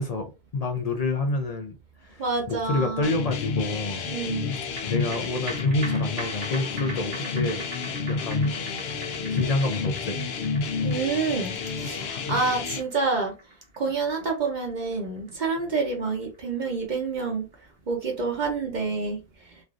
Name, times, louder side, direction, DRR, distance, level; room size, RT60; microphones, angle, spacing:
voice 1, 0.0-1.7 2.0-4.1 4.9-7.7 8.1-8.5 8.8-9.0 9.3-10.3, left 2 dB, 50° left, 0.5 m, -28 dB
voice 2, 2.2-3.2 4.1-4.5 10.8-13.3 13.8-17.5 17.9-19.2, right 4 dB, 50° right, 0.8 m, -28 dB
sound 1, 3.0-12.8, left 4 dB, 70° left, 0.8 m, -30 dB
sound 2, 4.5-17.2 17.5-17.6, right 2 dB, 70° right, 1.5 m, -43 dB
3.2 x 2.4 x 2.4 m
omnidirectional pair, 1.1 m